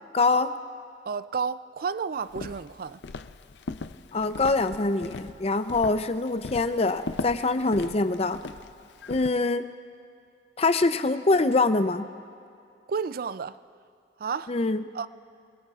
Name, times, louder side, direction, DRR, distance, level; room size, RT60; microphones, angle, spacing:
voice 1, 0.1-0.5 4.1-8.4 9.1-9.7 10.6-12.1 14.5-14.8, left 3 dB, 35° left, 0.6 m, -24 dB
voice 2, 1.1-3.0 12.9-13.6 14.2-14.6 14.9-15.1, right 5 dB, 55° right, 0.4 m, -31 dB
Walk footsteps, 2.3-9.3, left 3 dB, 80° left, 0.5 m, -39 dB
27.0 x 21.5 x 2.4 m
head